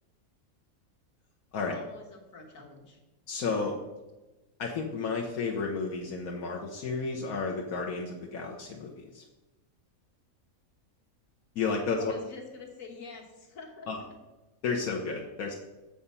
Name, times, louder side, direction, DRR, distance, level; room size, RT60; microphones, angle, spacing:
voice 1, 1.6-3.0 12.0-14.1, left 4 dB, 70° left, 1 dB, 1.7 m, -46 dB
voice 2, 3.3-3.7 4.6-9.2 11.5-12.1 13.9-14.0 14.6-15.5, left 4 dB, 85° left, -1 dB, 1.3 m, -32 dB
7.2 x 5.0 x 5.5 m, 1.1 s
omnidirectional pair, 1.5 m